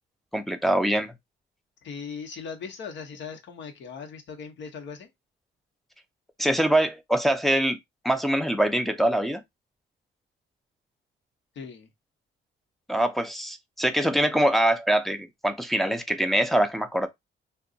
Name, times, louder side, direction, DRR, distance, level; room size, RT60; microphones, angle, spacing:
voice 1, 0.3-1.1 6.4-7.8 8.0-9.4 12.9-17.1, right 1 dB, ahead, 0.4 m, -24 dB
voice 2, 1.8-5.1 11.5-11.9, left 6 dB, 70° left, 0.9 m, -39 dB
2.5 x 2.2 x 3.8 m
cardioid pair, 125°, 20 cm